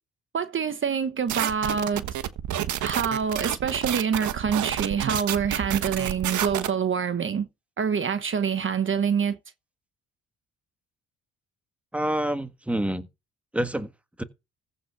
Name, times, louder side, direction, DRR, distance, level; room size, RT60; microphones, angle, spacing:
voice 1, 0.3-2.0 2.8-7.5 7.8-9.4, right 7 dB, 40° right, 1.1 m, -26 dB
sound 1, 1.3-6.7, right 11 dB, 75° right, 1.3 m, -29 dB
voice 2, 11.9-13.1 13.5-13.9 14.2-14.3, right 1 dB, 5° right, 1.5 m, -27 dB
15.0 x 5.6 x 5.9 m
cardioid pair, 90°, 30 cm